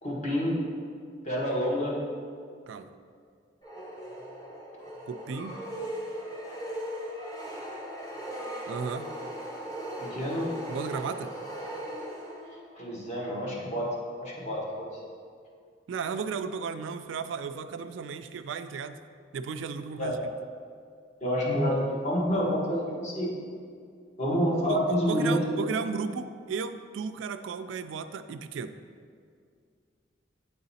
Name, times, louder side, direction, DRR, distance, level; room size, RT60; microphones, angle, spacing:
voice 1, 0.0-0.6 1.2-2.0 10.0-10.5 12.7-13.9 14.2-14.9 20.0-20.1 21.2-23.3 24.2-25.4, equal, 40° left, -4 dB, 1.3 m, -28 dB
sound 1, 3.6-12.7, equal, 20° left, 1.0 m, -38 dB
voice 2, 5.1-5.6 8.7-9.1 10.7-11.3 15.9-19.0 19.3-20.3 24.7-28.8, right 5 dB, 85° right, 9 dB, 0.3 m, -34 dB
8.7 x 3.9 x 4.1 m, 2.2 s
head